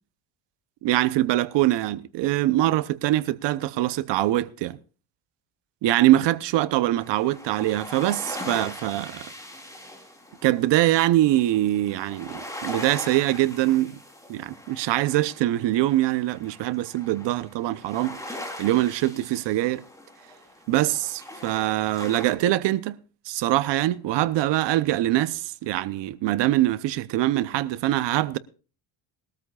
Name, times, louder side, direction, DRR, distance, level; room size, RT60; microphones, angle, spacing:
voice 1, 0.8-4.8 5.8-9.3 10.4-14.0 14.3-18.2 18.6-19.9 20.7-23.0 23.3-28.4, right 15 dB, 65° right, 0.9 m, -23 dB
sound 1, 6.9-22.4, left 1 dB, 5° left, 3.5 m, -41 dB
20.5 x 13.5 x 2.4 m
cardioid pair, 125°, 46 cm